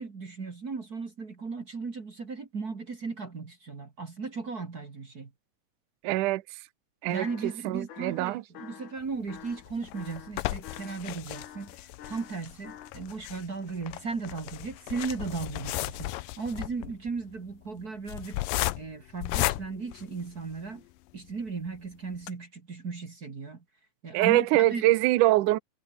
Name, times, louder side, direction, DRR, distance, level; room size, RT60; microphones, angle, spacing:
voice 1, 0.0-5.3 7.1-18.4 18.8-20.8 21.1-23.6 24.0-24.8, right 4 dB, 35° right, 1.7 m, -36 dB
voice 2, 6.0-6.4 7.0-8.4 24.1-25.6, right 17 dB, 75° right, 2.0 m, -24 dB
sound 1, 7.2-7.6 7.9-9.0 9.3-12.9, left 10 dB, 55° left, 3.0 m, -48 dB
sound 2, 9.4-20.8 21.3-21.4 21.7-21.8 22.2-22.3, left 18 dB, 80° left, 2.0 m, -35 dB
omnidirectional pair, 4.7 m